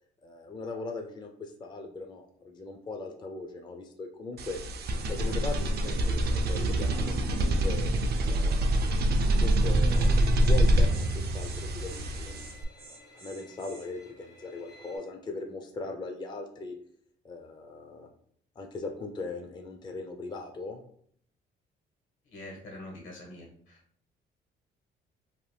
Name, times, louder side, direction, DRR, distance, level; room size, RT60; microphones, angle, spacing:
voice 1, 0.2-4.6 5.1-7.9 8.3-12.5 12.9-16.8 17.2-18.1 18.6-20.8, left 3 dB, 20° left, 4 dB, 0.4 m, -39 dB
sound 1, 4.4-12.6, right 1 dB, 55° right, 0.4 m, -25 dB
Bowed string instrument, 9.9-15.0, left 2 dB, 55° left, 0.8 m, -53 dB
Insect, 9.9-10.1 10.4-10.6 10.9-11.1 11.4-11.6 11.9-12.1 12.3-13.9, right 4 dB, 90° right, 0.7 m, -51 dB
voice 2, 22.2-23.8, left 1 dB, 80° left, -1 dB, 1.2 m, -45 dB
2.6 x 2.2 x 3.2 m, 0.63 s
cardioid pair, 90°, 20 cm